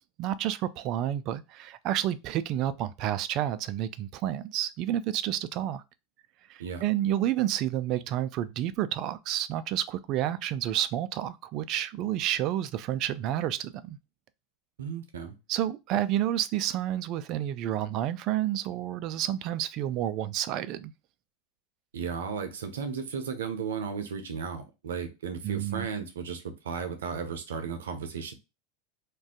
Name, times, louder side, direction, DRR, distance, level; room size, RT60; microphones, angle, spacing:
voice 1, 0.2-5.8 6.5-14.0 15.5-20.9 25.4-25.9, right 12 dB, 50° right, 0.3 m, -30 dB
voice 2, 14.8-15.4 21.9-28.3, right 6 dB, 85° right, 0.7 m, -35 dB
2.5 x 2.2 x 3.6 m
hypercardioid pair, 100°, 0 cm